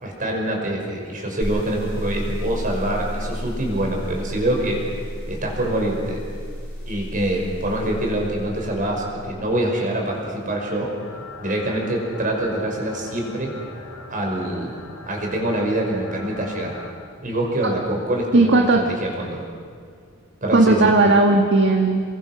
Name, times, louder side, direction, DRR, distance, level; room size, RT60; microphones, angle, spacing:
voice 1, 0.0-6.2 6.9-10.9 11.4-13.5 14.1-14.7 15.0-16.7 17.2-19.4 20.4-20.9, right 1 dB, 40° right, 0 dB, 5.8 m, -25 dB
sound 1, 1.4-9.2, equal, 5° left, 7.9 m, -32 dB
sound 2, 11.0-16.9, left 2 dB, 80° left, 4.7 m, -40 dB
voice 2, 18.3-18.8 20.5-22.0, right 2 dB, 55° right, 3 dB, 1.6 m, -16 dB
29.0 x 23.0 x 6.2 m, 2.1 s
head